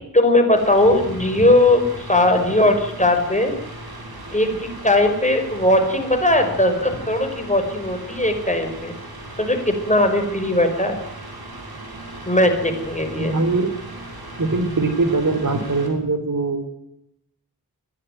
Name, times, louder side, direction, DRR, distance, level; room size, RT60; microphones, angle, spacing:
voice 1, 0.1-3.6 4.3-8.9 9.4-11.0 12.3-13.3, left 1 dB, 20° left, 5 dB, 5.6 m, -19 dB
Mechanical fan, 0.6-15.9, right 1 dB, 80° right, 6.2 m, -37 dB
voice 2, 13.2-13.7 14.4-16.6, right 3 dB, 55° right, 9 dB, 3.6 m, -21 dB
21.5 x 16.0 x 9.3 m, 0.80 s
wide cardioid pair, 65°, 37 cm